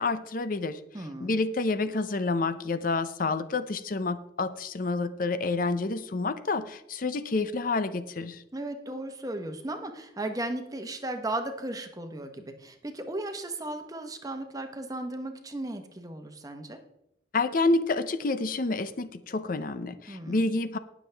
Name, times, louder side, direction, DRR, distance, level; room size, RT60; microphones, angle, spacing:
voice 1, 0.0-0.8 1.2-8.4 17.3-20.8, left 3 dB, 50° left, 12 dB, 0.6 m, -28 dB
voice 2, 0.9-1.4 8.5-16.8 20.1-20.5, right 1 dB, 20° right, 6 dB, 1.1 m, -36 dB
19.0 x 7.2 x 3.4 m, 0.82 s
head